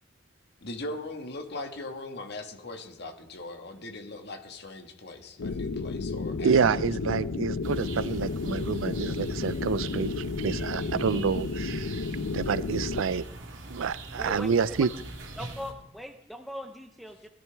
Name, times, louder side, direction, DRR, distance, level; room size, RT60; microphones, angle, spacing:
voice 1, 0.6-6.8 7.1-7.2, left 2 dB, 55° left, 5 dB, 1.6 m, -40 dB
sound 1, 5.4-13.0, left 3 dB, 80° left, 0.5 m, -32 dB
voice 2, 6.4-13.3 13.7-14.9, right 6 dB, 90° right, 18 dB, 0.5 m, -28 dB
sound 2, 7.6-15.7, right 2 dB, 70° right, 2.6 m, -42 dB
voice 3, 14.1-14.9 15.4-17.3, equal, ahead, 4 dB, 0.6 m, -40 dB
20.5 x 13.5 x 3.4 m, 0.85 s
head